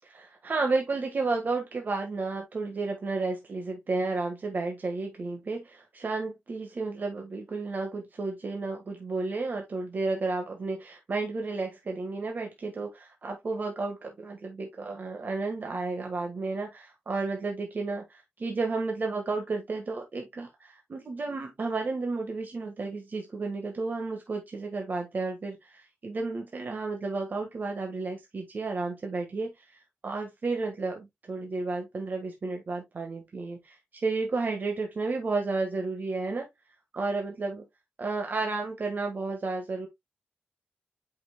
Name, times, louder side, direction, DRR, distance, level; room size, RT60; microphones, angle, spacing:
voice 1, 0.0-36.5 36.9-37.6 38.0-39.9, right 3 dB, 55° right, 1.5 m, -32 dB
8.2 x 5.7 x 2.3 m
wide cardioid pair, 100°, 4 cm